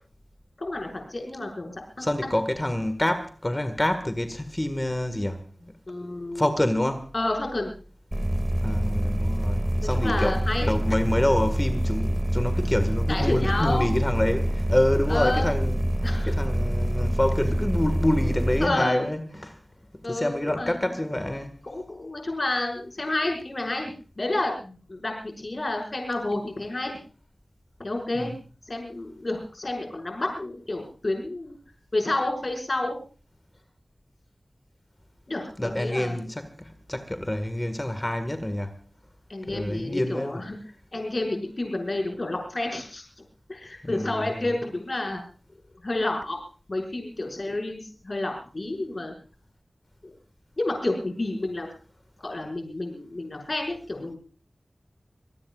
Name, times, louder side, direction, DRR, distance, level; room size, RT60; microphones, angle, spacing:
voice 1, 0.6-1.8 2.2-2.3 5.9-6.5 7.1-7.7 9.9-10.7 13.1-13.9 15.1-15.5 16.0-16.3 18.6-19.1 20.0-20.8 21.6-27.0 27.8-28.3 28.7-31.5 31.9-33.0 35.3-36.2 39.3-40.5 40.9-43.0 43.5-45.2 45.8-46.4 46.7-49.1 50.0-50.1 50.6-51.7 52.2-54.2, left 2 dB, 50° left, 5.8 m, -30 dB
voice 2, 2.0-5.7 6.3-7.1 8.6-15.8 16.2-19.6 20.1-21.5 28.1-28.4 35.6-38.7 39.5-40.5 43.8-44.6, left 1 dB, 20° left, 1.8 m, -27 dB
sound 1, 8.1-18.7, equal, 10° right, 2.3 m, -26 dB
26.5 x 19.0 x 2.5 m
wide cardioid pair, 70°, 0 cm